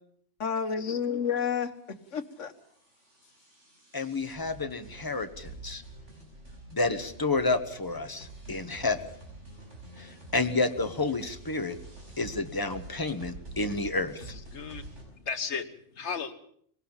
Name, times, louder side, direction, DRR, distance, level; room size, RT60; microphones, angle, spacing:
voice 1, 0.4-2.5, left 7 dB, 80° left, 11 dB, 1.6 m, -30 dB
sound 1, 1.8-15.1, right 2 dB, 75° right, 6.2 m, -47 dB
voice 2, 3.9-5.8 6.7-9.0 10.0-11.8 12.2-14.2, left 3 dB, 20° left, 8 dB, 1.2 m, -30 dB
voice 3, 14.2-14.8 15.1-16.3, left 5 dB, 65° left, 10 dB, 1.6 m, -35 dB
20.5 x 18.0 x 7.3 m, 0.64 s
omnidirectional pair, 1.2 m